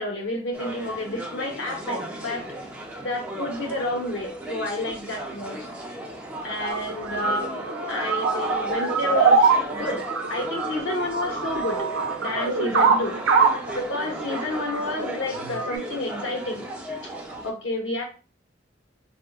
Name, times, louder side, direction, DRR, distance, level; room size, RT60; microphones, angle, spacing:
voice 1, 0.0-2.4 3.0-5.7 6.4-7.5 7.9-11.9 12.2-13.2 13.7-16.6 17.0-17.1 17.4-18.0, left 2 dB, 70° left, 1 dB, 0.7 m, -30 dB
sound 1, 0.5-17.5, right 1 dB, 10° right, 0.4 m, -35 dB
sound 2, 6.7-15.8, right 5 dB, 90° right, 0.5 m, -24 dB
3.5 x 2.0 x 2.3 m, 0.35 s
head